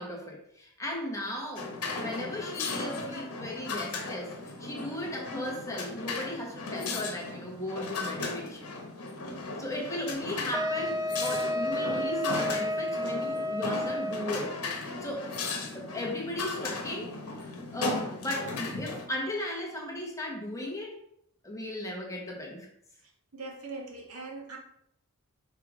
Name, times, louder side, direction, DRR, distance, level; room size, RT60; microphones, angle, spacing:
voice 1, 0.0-8.7 9.6-15.3 15.7-21.0 21.4-22.7, left 1 dB, 15° left, -1 dB, 1.3 m, -36 dB
sound 1, 1.6-19.1, left 3 dB, 70° left, 1.2 m, -36 dB
Wind instrument woodwind instrument, 10.5-14.4, left 1 dB, 15° right, 0.3 m, -31 dB
voice 2, 23.3-24.6, right 3 dB, 85° right, -1 dB, 1.6 m, -41 dB
5.8 x 3.6 x 4.9 m, 0.74 s
head